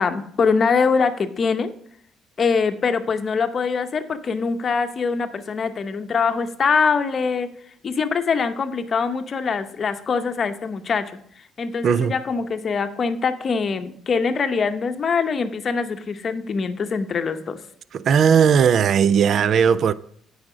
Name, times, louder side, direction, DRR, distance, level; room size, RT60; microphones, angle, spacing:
voice 1, 0.0-1.7 2.4-7.5 7.8-11.1 11.6-17.6, left 5 dB, 40° left, 0.8 m, -23 dB
voice 2, 11.8-12.1 17.9-19.9, right 7 dB, 55° right, 0.3 m, -17 dB
8.8 x 5.0 x 5.0 m
cardioid pair, 95°, 0 cm